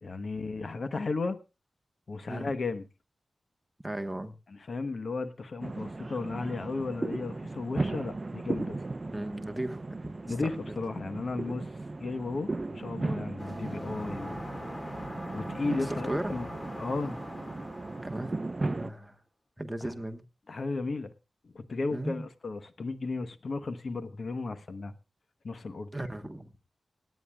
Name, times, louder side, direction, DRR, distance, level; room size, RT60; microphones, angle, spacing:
voice 1, 0.0-1.4 2.1-2.9 4.5-8.8 10.3-11.7 12.0-14.6 15.3-16.5 16.8-17.2 20.5-21.1 21.5-24.9 25.4-25.9, left 3 dB, 60° left, 1.1 m, -34 dB
voice 2, 3.8-4.3 9.1-10.2 15.9-16.4 18.0-19.2 19.6-20.2 21.9-22.2 25.9-26.5, right 1 dB, 10° right, 1.2 m, -36 dB
sound 1, 5.6-18.9, right 2 dB, 30° right, 0.6 m, -36 dB
sound 2, 13.4-18.9, left 1 dB, 20° left, 1.9 m, -42 dB
26.0 x 9.4 x 2.3 m
wide cardioid pair, 110°, 0 cm